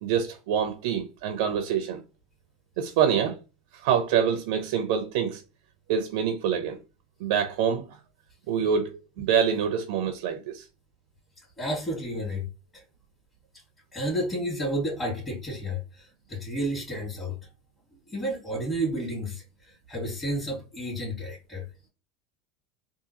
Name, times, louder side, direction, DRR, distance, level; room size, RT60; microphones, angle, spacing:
voice 1, 0.0-2.0 2.8-3.4 3.8-5.4 5.9-6.8 7.2-7.9 8.5-10.6, right 7 dB, 75° right, 0.6 m, -26 dB
voice 2, 11.6-12.4 12.7-12.8 13.9-17.3 18.1-21.6, equal, 20° left, 2.0 m, -31 dB
3.7 x 2.5 x 2.9 m
supercardioid pair, 110°, 0 cm